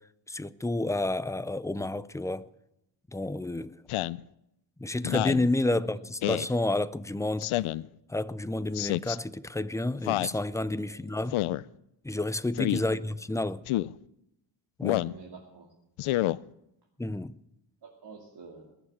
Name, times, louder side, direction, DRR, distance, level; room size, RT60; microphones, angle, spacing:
voice 1, 0.3-2.5 3.1-3.7 4.8-7.5 8.1-11.4 12.0-13.6 14.8-15.1 17.0-17.4, left 2 dB, 5° left, 0.4 m, -30 dB
Speech synthesizer, 3.9-4.2 5.0-5.4 6.2-6.5 7.4-7.8 8.7-9.2 10.0-10.4 11.3-11.6 12.5-12.8 13.7-13.9 14.8-15.2 16.0-16.4, left 16 dB, 85° left, 0.6 m, -28 dB
voice 2, 12.8-13.1 15.0-15.7 17.8-18.7, right 5 dB, 55° right, 2.6 m, -48 dB
21.0 x 7.2 x 7.3 m
cardioid pair, 100°, 49 cm